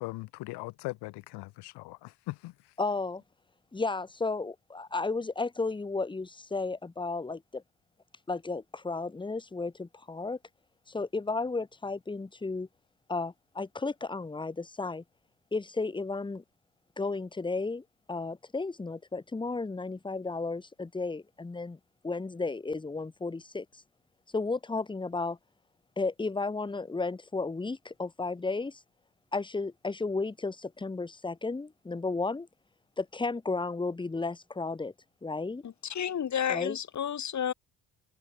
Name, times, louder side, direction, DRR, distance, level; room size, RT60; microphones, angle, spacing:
voice 1, 0.0-2.5, left 21 dB, 85° left, 0.8 m, -39 dB
voice 2, 2.8-3.2 3.7-7.6 8.3-10.4 10.9-12.7 13.1-15.0 15.5-16.4 17.0-21.8 22.0-23.8 24.3-25.4 26.0-28.8 29.3-32.5 33.0-34.9 35.2-35.6 36.5-36.8, left 3 dB, 10° left, 0.9 m, -33 dB
voice 3, 35.6-37.5, left 8 dB, 45° left, 1.9 m, -31 dB
cardioid pair, 90°, 39 cm